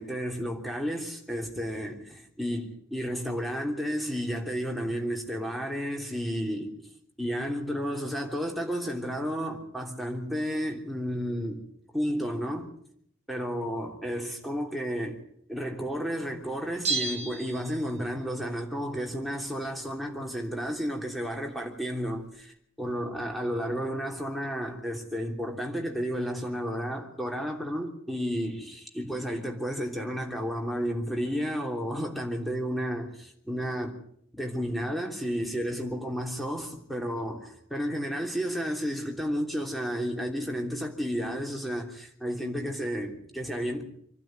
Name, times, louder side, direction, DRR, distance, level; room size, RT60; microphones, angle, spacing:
voice 1, 0.0-6.7 7.2-11.6 11.9-12.7 13.3-15.2 15.5-33.9 34.3-43.8, equal, ahead, 3.2 m, -32 dB
Bell, 16.8-18.2 18.5-18.6, right 4 dB, 35° right, 3.0 m, -32 dB
27.5 x 12.0 x 9.3 m
head